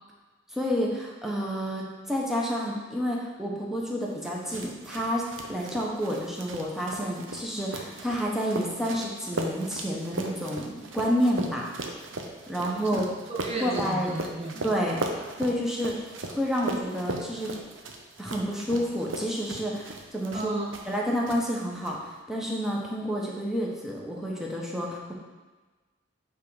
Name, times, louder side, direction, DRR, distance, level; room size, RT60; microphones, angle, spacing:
voice 1, 0.5-11.7 12.5-13.1 13.6-14.1 14.6-15.0 15.4-17.5 18.2-20.5 20.9-25.1, equal, ahead, -3 dB, 1.0 m, -29 dB
sound 1, 4.2-21.0 21.3-21.9, right 2 dB, 75° right, 0.8 m, -38 dB
voice 2, 12.9-14.7 20.3-20.7, right 2 dB, 30° right, -1 dB, 0.5 m, -34 dB
8.4 x 3.6 x 4.9 m, 1.3 s
head